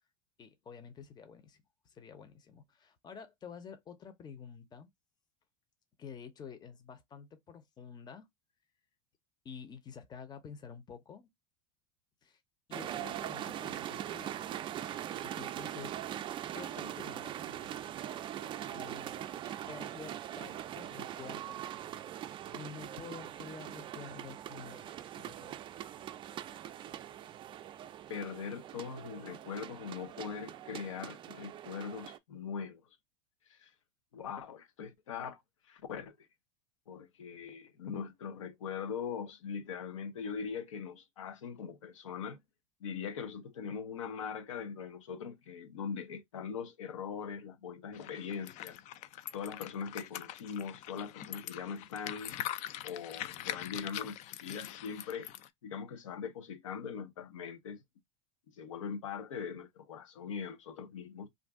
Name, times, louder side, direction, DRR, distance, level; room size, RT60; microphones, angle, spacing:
voice 1, 0.4-1.6 1.9-4.9 6.0-8.3 9.4-11.3 12.2-12.4 12.7-14.4 15.1-16.0 16.5-17.8 18.7-19.2 19.7-21.7 22.0-22.1 22.5-25.6, left 6 dB, 25° left, 0.8 m, -49 dB
sound 1, 12.7-32.2, right 11 dB, 30° right, 0.4 m, -42 dB
voice 2, 28.1-32.8 33.5-33.7 34.1-36.3 36.9-42.4 42.8-48.8 49.3-52.3 52.8-55.3 55.6-57.8 58.5-61.3, left 6 dB, 90° left, 0.8 m, -41 dB
sound 2, 47.9-55.5, left 13 dB, 50° left, 0.4 m, -43 dB
2.6 x 2.3 x 3.5 m
hypercardioid pair, 105°, 16 cm